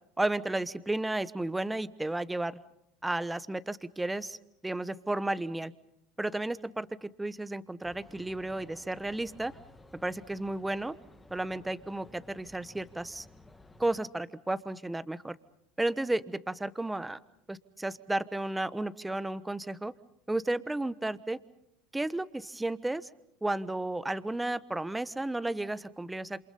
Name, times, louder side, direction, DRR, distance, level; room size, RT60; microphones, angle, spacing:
voice 1, 0.2-2.6 3.0-4.4 4.6-5.7 6.2-9.5 10.0-10.9 11.3-13.3 13.8-15.4 15.8-17.2 17.5-19.9 20.3-21.4 21.9-23.1 23.4-26.4, right 2 dB, 10° right, 15 dB, 1.1 m, -33 dB
sound 1, 7.8-14.0, left 2 dB, 10° left, 1.8 m, -55 dB
28.5 x 27.0 x 5.6 m, 0.74 s
hypercardioid pair, 85°, 0 cm